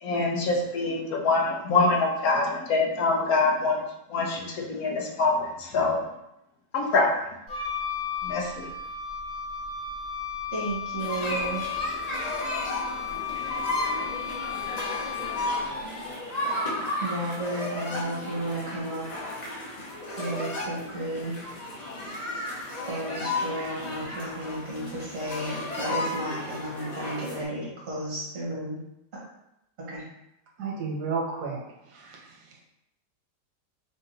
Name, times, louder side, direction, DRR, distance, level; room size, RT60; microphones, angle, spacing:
voice 1, 0.0-3.8 4.1-6.0 6.7-7.1 8.2-8.7, left 3 dB, 65° left, 0 dB, 1.0 m, -25 dB
Wind instrument woodwind instrument, 7.5-15.8, left 7 dB, 50° left, 0.7 m, -34 dB
voice 2, 10.5-11.7 17.0-19.1 20.2-21.4 22.9-28.8 29.9-30.0, right 1 dB, 50° right, -5 dB, 1.7 m, -33 dB
sound 1, 11.0-27.4, left 1 dB, 90° left, 0.3 m, -33 dB
voice 3, 30.6-32.6, right 4 dB, 70° right, -2 dB, 1.4 m, -33 dB
3.7 x 3.6 x 2.7 m, 0.84 s
omnidirectional pair, 1.9 m